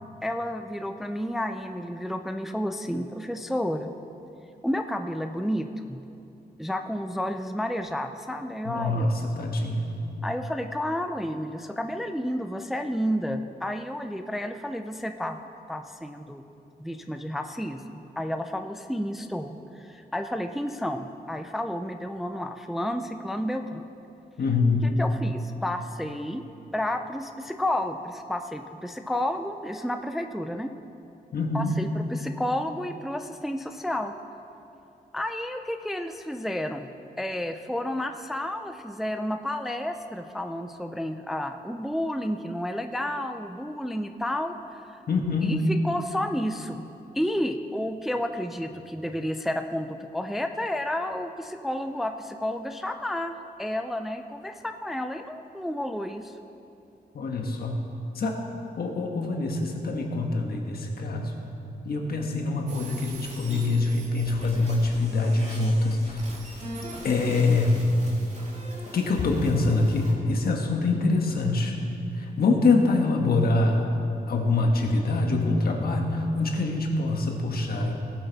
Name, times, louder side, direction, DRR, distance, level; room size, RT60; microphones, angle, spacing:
voice 1, 0.2-3.9 4.6-6.0 6.6-9.1 10.2-15.4 15.7-16.5 16.8-23.8 24.8-26.4 26.7-30.7 31.5-34.1 35.1-36.9 37.2-44.9 45.4-46.8 47.1-56.3, left 1 dB, ahead, 6 dB, 0.4 m, -31 dB
voice 2, 8.6-9.8 24.4-24.9 31.3-31.8 45.1-45.5 57.1-57.8 58.1-58.4 58.8-61.3 61.8-66.2 67.0-67.8 68.9-71.8 72.2-73.9 74.3-77.9, left 3 dB, 65° left, 2 dB, 1.4 m, -24 dB
sound 1, 62.7-70.1, right 1 dB, 45° right, 2.1 m, -42 dB
17.5 x 7.8 x 4.0 m, 2.8 s
wide cardioid pair, 140°, 17 cm